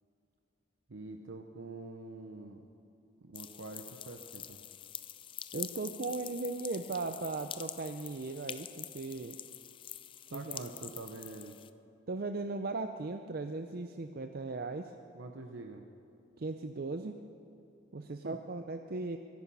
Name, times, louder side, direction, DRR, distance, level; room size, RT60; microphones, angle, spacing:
voice 1, 0.9-2.6 3.2-4.6 10.3-11.6 15.1-15.8 18.2-18.4, right 2 dB, 80° right, 4 dB, 0.9 m, -45 dB
sound 1, 3.3-11.7, left 10 dB, 25° left, 0.4 m, -46 dB
voice 2, 5.5-9.4 10.3-10.6 12.1-14.9 16.4-17.2 17.9-19.2, right 3 dB, 50° right, 7 dB, 0.5 m, -37 dB
23.0 x 10.5 x 5.6 m, 2.6 s
head